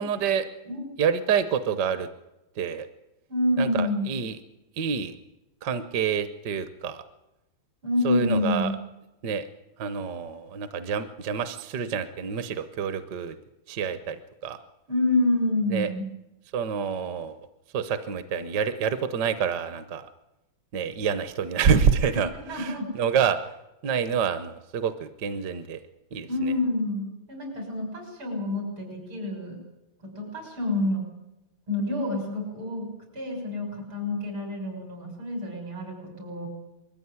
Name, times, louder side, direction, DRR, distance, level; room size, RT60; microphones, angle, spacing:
voice 1, 0.0-0.4 1.0-2.1 2.6-2.9 3.6-4.3 4.8-5.1 5.6-7.0 8.0-8.7 9.2-9.4 9.8-13.3 13.7-14.2 14.4-14.6 15.7-15.9 16.5-17.4 17.7-20.0 20.7-23.4 23.8-25.8 26.1-26.5, right 7 dB, 60° right, 12 dB, 1.4 m, -27 dB
voice 2, 3.3-4.2 7.8-8.8 14.9-16.1 22.3-22.9 26.3-29.6 30.2-31.0 31.7-32.9 33.1-36.5, left 2 dB, 85° right, 3 dB, 7.2 m, -28 dB
21.0 x 14.5 x 9.6 m, 0.97 s
omnidirectional pair, 2.2 m